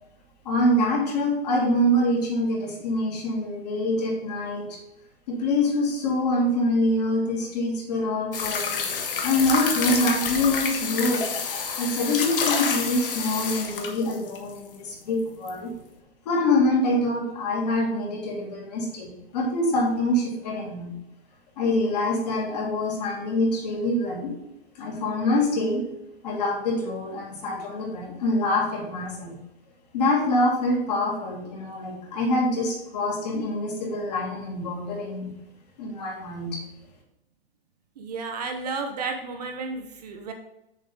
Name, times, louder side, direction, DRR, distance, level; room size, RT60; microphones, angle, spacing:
voice 1, 0.4-4.8 5.3-8.9 9.2-11.2 11.8-15.7 16.3-20.9 21.6-24.3 24.8-25.8 26.2-29.3 29.9-35.3 35.8-36.6, left 1 dB, 40° left, -1 dB, 2.5 m, -25 dB
sound 1, 8.3-14.5 15.5-15.6, left 5 dB, 55° left, 1.6 m, -28 dB
voice 2, 38.0-40.3, right 4 dB, 40° right, 4 dB, 0.9 m, -32 dB
7.5 x 7.4 x 3.7 m, 0.86 s
hypercardioid pair, 175°, 32 cm